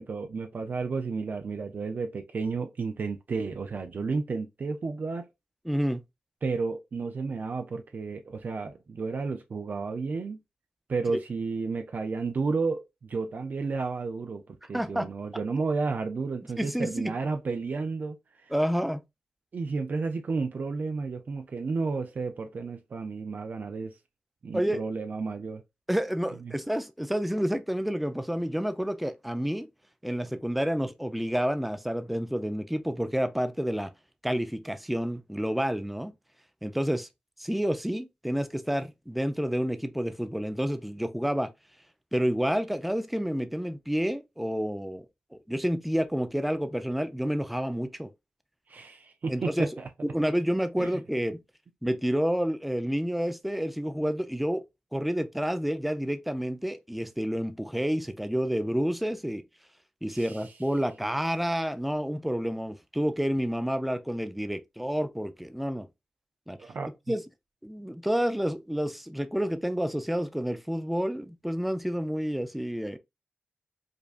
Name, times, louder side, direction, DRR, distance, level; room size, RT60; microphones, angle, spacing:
voice 1, 0.0-5.2 6.4-10.4 10.9-18.5 19.5-24.0 24.4-25.6 26.4-26.5 48.7-49.9 50.8-50.9 60.1-60.5 66.6-66.9, right 4 dB, 60° right, 0.5 m, -32 dB
voice 2, 5.7-6.0 14.7-15.1 16.6-17.1 18.5-19.0 24.5-24.8 25.9-29.7 30.0-33.9 34.2-36.1 36.6-37.1 37.4-41.5 42.1-45.1 45.3-48.1 49.3-49.7 50.0-51.4 51.8-54.6 54.9-59.4 60.0-65.9 66.5-66.6 67.1-67.2 67.6-73.0, equal, ahead, 0.5 m, -29 dB
5.0 x 2.3 x 2.4 m
cardioid pair, 60°, 3 cm